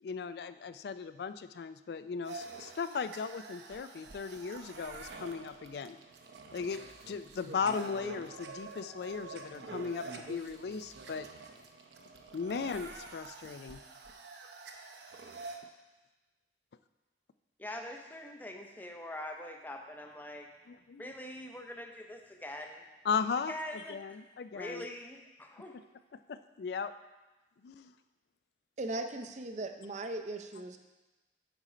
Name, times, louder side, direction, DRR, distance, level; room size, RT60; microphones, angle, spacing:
voice 1, 0.0-6.0 6.5-11.3 12.3-13.8 20.7-21.1 23.0-24.9 26.1-26.9 27.6-27.9, left 5 dB, 60° left, 13 dB, 0.3 m, -37 dB
sound 1, 2.2-15.6, right 3 dB, 75° right, 0.7 m, -47 dB
voice 2, 17.6-20.5 21.0-22.8 23.5-24.0 24.5-25.8, left 1 dB, 10° left, 2 dB, 0.6 m, -43 dB
voice 3, 28.8-30.8, right 2 dB, 40° right, 7 dB, 0.5 m, -38 dB
8.8 x 4.3 x 5.0 m, 1.1 s
head